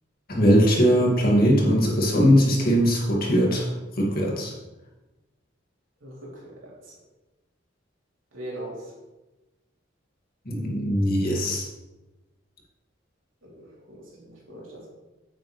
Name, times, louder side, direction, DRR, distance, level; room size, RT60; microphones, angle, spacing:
voice 1, 0.3-3.7 4.0-4.5 10.5-11.7, equal, 50° left, -2 dB, 2.3 m, -20 dB
voice 2, 6.0-6.7 8.3-8.7 13.4-14.9, right 1 dB, 80° right, -4 dB, 3.3 m, -40 dB
9.3 x 9.1 x 3.3 m, 1.1 s
head